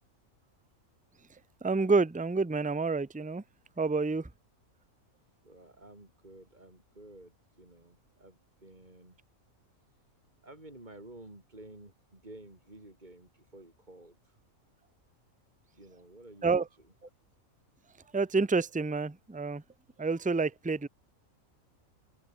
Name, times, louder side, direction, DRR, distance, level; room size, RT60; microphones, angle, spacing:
voice 1, 1.6-3.4 3.8-4.3 16.4-16.6 18.1-19.6 20.0-20.9, right 4 dB, 10° right, 0.4 m, -28 dB
voice 2, 5.4-9.2 10.4-14.4 15.7-16.6 17.0-17.1, right 1 dB, 30° right, 5.1 m, -52 dB
omnidirectional pair, 1.4 m